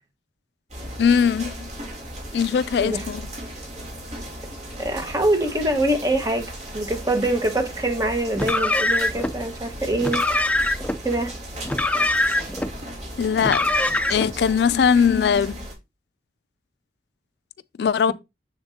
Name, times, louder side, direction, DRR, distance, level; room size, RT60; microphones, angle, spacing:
sound 1, 0.7-15.7, right 1 dB, 40° right, 3.0 m, -36 dB
voice 1, 1.0-1.7 2.3-3.2 13.2-13.7 14.1-15.6 17.8-18.1, left 7 dB, 65° left, 0.3 m, -20 dB
voice 2, 4.8-10.2 11.0-11.3, right 1 dB, 20° right, 1.4 m, -24 dB
Car, 8.3-9.3 10.0-11.0 11.6-12.7 13.4-14.3, left 2 dB, 10° left, 0.5 m, -23 dB
7.1 x 6.9 x 2.8 m
head